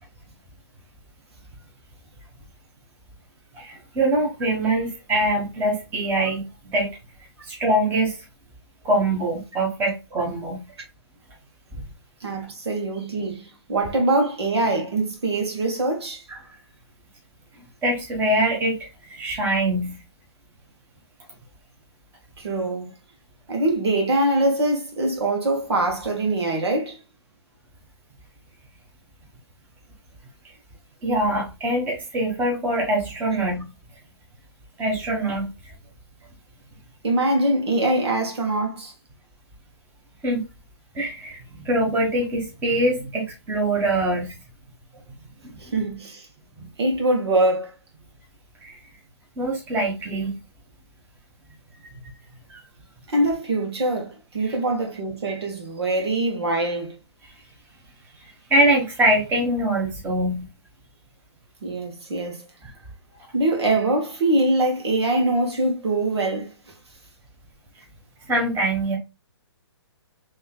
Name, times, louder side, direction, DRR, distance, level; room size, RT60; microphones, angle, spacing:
voice 1, 3.5-6.9 7.4-8.2 8.8-10.7 17.6-20.0 31.0-33.7 34.8-35.5 40.2-40.4 40.9-44.3 45.4-45.6 46.6-46.7 48.6-48.8 49.4-50.4 52.5-52.6 54.4-54.6 58.5-60.5 68.3-69.0, right 1 dB, 15° right, 1.5 m, -23 dB
voice 2, 12.2-16.2 22.4-22.9 23.5-27.0 37.0-38.9 45.6-46.3 46.8-47.7 53.1-57.0 61.6-62.4 63.3-66.5, right 2 dB, 70° right, 1.6 m, -23 dB
5.5 x 3.1 x 2.4 m
hypercardioid pair, 140°, 14 cm